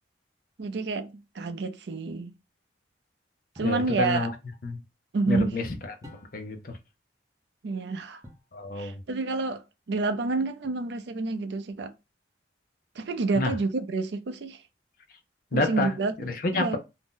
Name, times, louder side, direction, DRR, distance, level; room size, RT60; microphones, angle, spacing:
voice 1, 0.6-2.3 3.6-4.3 5.1-5.5 7.6-8.2 8.8-9.6 9.9-11.9 13.0-14.6 15.5-16.1 16.5-16.8, right 3 dB, 70° right, 0.4 m, -29 dB
voice 2, 3.6-4.3 4.6-4.8 5.3-6.8 8.5-9.0 13.3-13.6 15.5-16.8, left 2 dB, 50° left, 0.5 m, -29 dB
sound 1, 3.6-3.9 6.0-6.6 8.2-8.6 10.6-11.2, left 1 dB, 20° right, 0.6 m, -50 dB
2.6 x 2.1 x 3.6 m
head